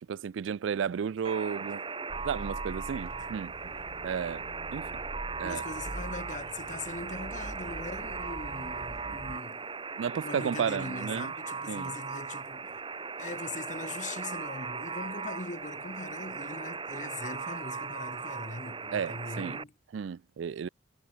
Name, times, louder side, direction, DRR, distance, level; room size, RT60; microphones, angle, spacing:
voice 1, 0.0-1.8 2.2-3.5 4.0-4.5 4.7-4.8 5.4-5.6 9.1-9.2 10.0-11.3 11.7-11.9 18.9-19.6 19.9-20.7, right 7 dB, 75° right, 0.4 m, -33 dB
Alarm, 1.2-19.6, right 5 dB, 25° right, 1.4 m, -38 dB
sound 1, 2.1-9.4, right 1 dB, 55° right, 2.0 m, -44 dB
voice 2, 5.4-9.7 10.2-12.7 13.2-19.7, left 3 dB, 40° left, 1.7 m, -41 dB
head